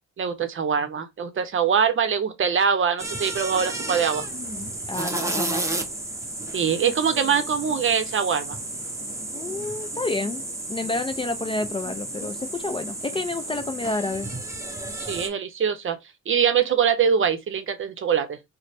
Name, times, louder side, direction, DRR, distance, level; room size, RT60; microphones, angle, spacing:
voice 1, 0.2-4.3 6.5-8.6 15.1-16.0 16.3-18.4, right 7 dB, 45° right, 0.7 m, -23 dB
sound 1, 3.0-15.3, right 2 dB, 10° right, 0.7 m, -32 dB
voice 2, 4.9-5.7 9.3-10.4 10.7-14.3, left 3 dB, 20° left, 0.4 m, -29 dB
3.1 x 2.1 x 4.1 m
cardioid pair, 90°, 30 cm